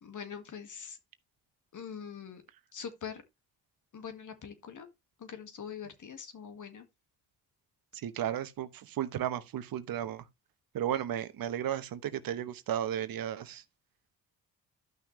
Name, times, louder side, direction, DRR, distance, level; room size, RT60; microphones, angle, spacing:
voice 1, 0.0-1.0 1.7-2.4 2.7-3.2 3.9-4.9 5.2-6.9, left 7 dB, 50° left, 1.9 m, -43 dB
voice 2, 8.0-10.2 10.7-13.6, right 10 dB, 65° right, 1.0 m, -34 dB
12.0 x 5.9 x 3.2 m
supercardioid pair, 60°, 38 cm